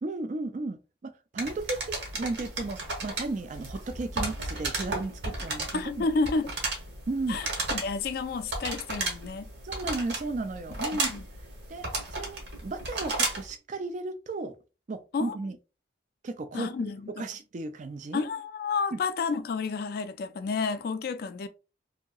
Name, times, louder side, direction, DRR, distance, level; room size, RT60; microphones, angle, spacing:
voice 1, 0.0-6.1 7.1-7.4 9.6-11.1 11.7-11.9 12.1-14.5 14.9-15.6 16.2-16.9 17.2-18.2 18.9-19.0, right 3 dB, 40° right, 0.3 m, -34 dB
sound 1, 1.4-13.5, right 2 dB, 65° right, 1.0 m, -34 dB
voice 2, 5.7-6.5 7.3-9.5 11.1-11.2 15.1-15.4 16.5-17.3 18.1-21.5, left 4 dB, 50° left, 0.3 m, -30 dB
2.8 x 2.7 x 2.3 m
head